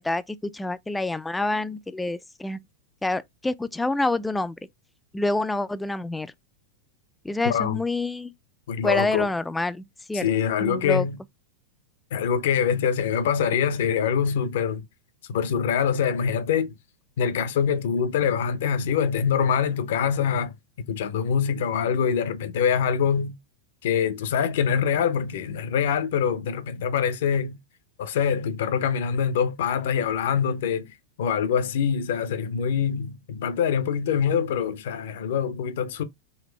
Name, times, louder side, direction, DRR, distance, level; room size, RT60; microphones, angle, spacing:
voice 1, 0.0-2.6 3.0-4.6 5.1-6.3 7.2-8.3 8.8-10.3 10.6-11.1, left 2 dB, 10° left, 0.4 m, -27 dB
voice 2, 7.4-7.8 8.7-9.3 10.1-11.2 12.1-14.8 15.3-16.7 17.2-23.4 23.8-27.6 28.0-30.9 31.2-36.0, left 7 dB, 70° left, 0.7 m, -24 dB
4.1 x 2.6 x 3.2 m
hypercardioid pair, 110°, 0 cm